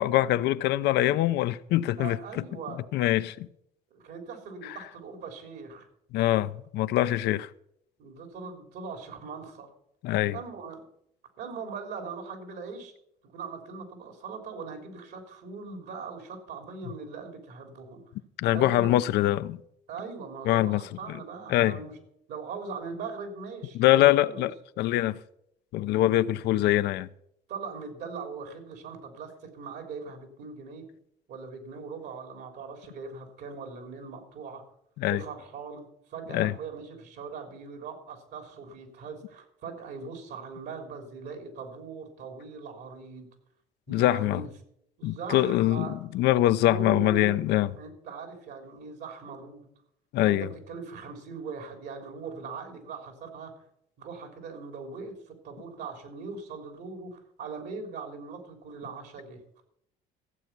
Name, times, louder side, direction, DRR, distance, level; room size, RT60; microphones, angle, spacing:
voice 1, 0.0-2.2 2.9-3.5 4.6-4.8 6.1-7.5 10.0-10.4 18.4-19.6 20.5-20.8 21.1-21.2 21.5-21.8 23.7-25.2 25.7-27.1 35.0-35.2 36.3-36.5 43.9-44.4 45.0-47.7 50.1-50.5, left 14 dB, 80° left, 0.6 m, -24 dB
voice 2, 2.0-2.8 3.9-5.9 8.0-9.7 10.3-10.8 11.4-12.9 13.3-18.0 18.5-18.9 19.9-21.9 22.3-24.5 27.5-30.8 31.3-34.6 35.1-43.3 43.9-44.5 45.0-45.9 46.6-47.3 47.8-49.7 50.3-53.6 54.0-59.6, right 5 dB, 75° right, 3.5 m, -40 dB
15.0 x 8.1 x 6.0 m
cardioid pair, 110°, 17 cm